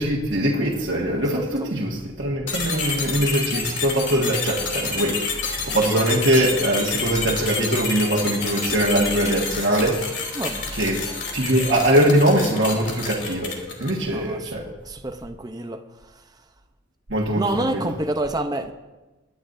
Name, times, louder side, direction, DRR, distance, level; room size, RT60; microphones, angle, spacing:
voice 1, 0.0-10.0 10.7-13.5 13.8-14.7 17.1-17.8, right 1 dB, 60° right, -4 dB, 1.6 m, -22 dB
voice 2, 1.2-1.7 10.4-10.7 14.1-14.6 14.8-15.8 17.3-18.7, right 2 dB, 20° right, 6 dB, 0.7 m, -28 dB
sound 1, 2.5-14.1, left 4 dB, 60° left, 3.0 m, -29 dB
23.5 x 11.5 x 2.7 m, 1.1 s
head